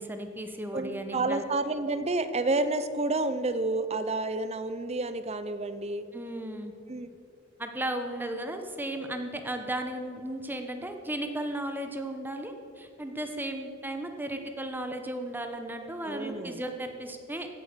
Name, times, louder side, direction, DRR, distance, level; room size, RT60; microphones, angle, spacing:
voice 1, 0.0-1.4 6.1-6.7 7.6-17.5, right 1 dB, 10° right, 6 dB, 1.1 m, -35 dB
voice 2, 0.7-6.1 6.9-7.1 16.0-16.6, right 2 dB, 35° right, 12 dB, 0.7 m, -30 dB
16.0 x 8.4 x 6.9 m, 2.4 s
head